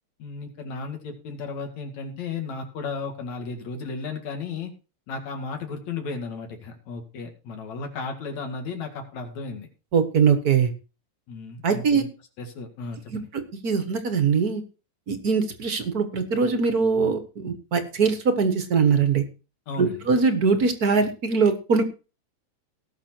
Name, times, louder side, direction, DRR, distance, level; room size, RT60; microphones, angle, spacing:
voice 1, 0.2-4.7 5.1-9.7 11.3-12.1 12.4-13.3 19.7-20.1, left 4 dB, 70° left, 4 dB, 3.5 m, -34 dB
voice 2, 9.9-10.7 11.6-12.0 13.1-14.6 15.1-19.2 19.8-21.8, right 5 dB, 45° right, 8 dB, 1.3 m, -22 dB
18.5 x 6.3 x 4.5 m, 0.33 s
omnidirectional pair, 3.4 m